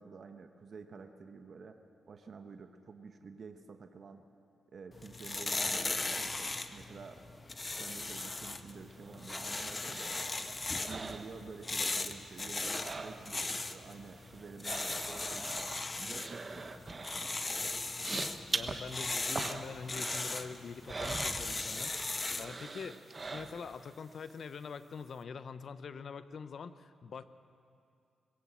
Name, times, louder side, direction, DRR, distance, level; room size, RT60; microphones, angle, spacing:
voice 1, 0.0-1.8 2.1-4.2 4.7-7.2 7.8-10.6 10.9-17.4, right 5 dB, 55° right, 7 dB, 1.2 m, -50 dB
sound 1, 4.9-22.6, left 2 dB, 30° left, 1.1 m, -38 dB
sound 2, 8.9-12.0 12.2-13.6 13.8-22.0 22.3-23.9 24.3-24.4, right 3 dB, 35° right, 1.2 m, -43 dB
voice 2, 18.5-22.1 22.4-27.2, left 6 dB, 60° left, 13 dB, 0.8 m, -44 dB
21.5 x 16.5 x 7.6 m, 2.4 s
cardioid pair, 65°, 0 cm